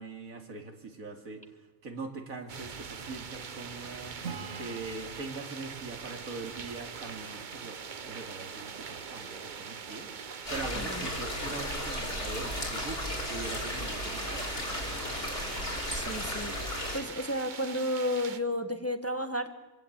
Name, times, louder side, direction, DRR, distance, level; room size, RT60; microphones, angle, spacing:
voice 1, 0.0-1.4 1.8-4.2 4.5-10.1 10.5-14.7, right 3 dB, 90° right, 5 dB, 2.9 m, -42 dB
sound 1, 2.5-18.4, right 6 dB, 40° right, 0.9 m, -42 dB
Acoustic guitar / Strum, 4.2-7.7, right 5 dB, 70° right, 2.3 m, -46 dB
sound 2, 10.5-17.0, left 1 dB, 45° left, 4.7 m, -35 dB
voice 2, 10.8-11.1 15.9-16.6 16.9-19.5, left 1 dB, 10° left, 8 dB, 1.4 m, -32 dB
25.5 x 16.5 x 8.8 m, 1.1 s
omnidirectional pair, 1.4 m